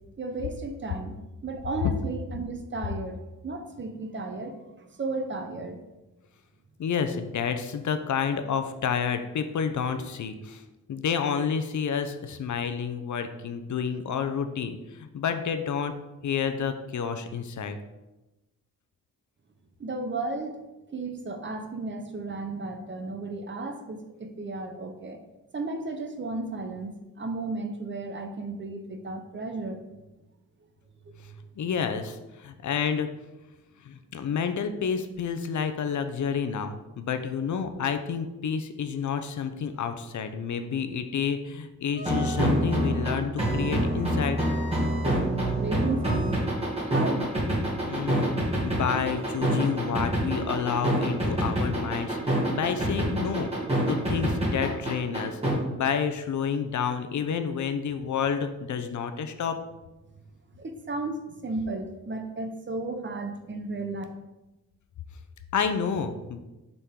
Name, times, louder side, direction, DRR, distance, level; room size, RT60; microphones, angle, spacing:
voice 1, 0.2-1.1 1.4-3.2 3.4-5.8 19.8-20.6 20.9-25.2 25.5-29.8 31.1-31.2 45.6-46.3 46.9-47.3 60.6-64.0, right 3 dB, 35° right, 6 dB, 0.7 m, -34 dB
voice 2, 6.8-10.6 10.9-15.9 16.2-17.8 31.6-33.1 33.9-44.4 47.9-48.3 48.6-52.2 52.5-53.5 53.9-55.4 55.7-59.6 65.5-66.4, left 7 dB, 60° left, 8 dB, 0.6 m, -29 dB
sound 1, 42.0-55.5, right 1 dB, 20° right, 2.4 m, -26 dB
7.0 x 5.3 x 3.7 m, 1.0 s
wide cardioid pair, 155°, 33 cm